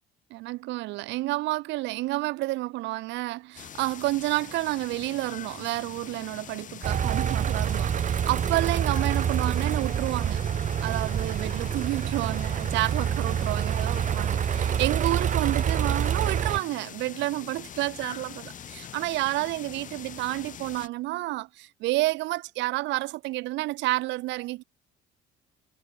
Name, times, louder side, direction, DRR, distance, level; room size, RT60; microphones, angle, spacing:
voice 1, 0.3-10.5 10.8-24.6, right 19 dB, 70° right, 0.6 m, -30 dB
sound 1, 3.6-20.9, left 9 dB, 45° left, 0.9 m, -43 dB
sound 2, 6.8-16.6, right 8 dB, 40° right, 0.9 m, -27 dB
supercardioid pair, 80°, 19 cm